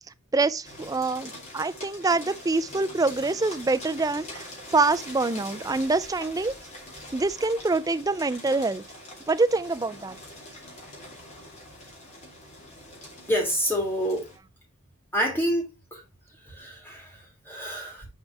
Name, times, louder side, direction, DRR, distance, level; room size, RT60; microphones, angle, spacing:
voice 1, 0.3-6.5 7.1-8.8 9.3-10.2, right 3 dB, 15° right, 0.3 m, -25 dB
sound 1, 0.6-14.4, left 1 dB, 30° left, 2.6 m, -43 dB
voice 2, 13.3-14.2 15.1-15.6 15.9-16.0 16.4-18.1, equal, 10° left, 3.0 m, -27 dB
6.6 x 4.7 x 4.5 m
head